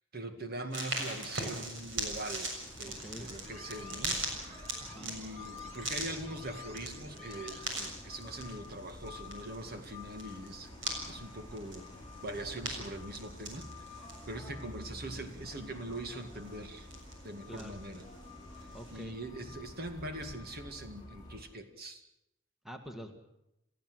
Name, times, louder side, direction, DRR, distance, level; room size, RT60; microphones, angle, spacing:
voice 1, 0.1-4.7 5.0-10.7 11.1-11.9 12.2-16.9 17.2-18.1 18.6-22.0, right 1 dB, 50° right, 6 dB, 2.2 m, -42 dB
sound 1, 0.7-19.1, right 2 dB, 70° right, 6.8 m, -42 dB
sound 2, 2.6-21.4, left 2 dB, 20° left, 6.5 m, -49 dB
voice 2, 2.9-3.3 4.8-5.1 17.5-17.8 18.7-19.1 22.6-23.1, equal, ahead, 5 dB, 2.0 m, -46 dB
sound 3, 2.9-7.9, right 1 dB, 35° right, 2.8 m, -52 dB
29.5 x 14.5 x 7.9 m, 0.87 s
head